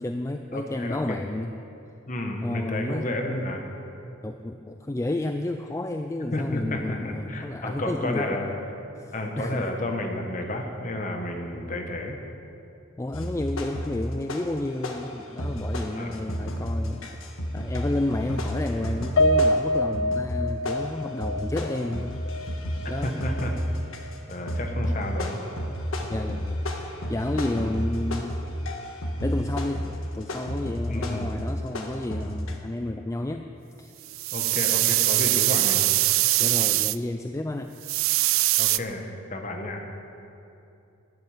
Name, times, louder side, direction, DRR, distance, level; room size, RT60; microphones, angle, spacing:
voice 1, 0.0-1.5 2.4-3.1 4.2-8.5 9.0-9.7 13.0-17.3 17.5-22.5 22.9-23.3 26.1-26.6 27.1-28.4 29.2-29.8 30.1-33.5 33.8-33.9 36.4-37.8, left 1 dB, 15° left, 6 dB, 0.3 m, -31 dB
voice 2, 0.5-1.2 2.1-3.6 6.3-8.5 9.1-12.2 15.9-16.2 23.0-23.5 24.3-25.4 30.9-31.3 34.3-35.8 38.6-39.8, left 1 dB, 40° left, 3 dB, 1.3 m, -31 dB
sound 1, 13.1-14.6 14.8-32.5, equal, 90° left, 1.4 m, -31 dB
Piano, 19.2-23.6 24.0-24.2 24.6-24.7, left 1 dB, 70° left, 0.5 m, -26 dB
sound 2, 34.1-37.0 37.8-38.8, right 18 dB, 90° right, 0.4 m, -22 dB
12.0 x 7.9 x 9.4 m, 2.8 s
head